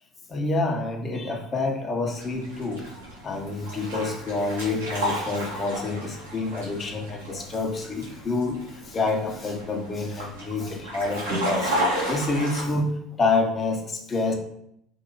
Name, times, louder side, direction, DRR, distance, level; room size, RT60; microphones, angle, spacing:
voice 1, 0.3-2.9 3.2-12.9 13.2-14.3, left 3 dB, 30° left, 2 dB, 0.6 m, -28 dB
sound 1, 2.1-12.6, equal, 80° right, 0.8 m, -33 dB
2.6 x 2.5 x 2.8 m, 0.72 s
hypercardioid pair, 65°, 0 cm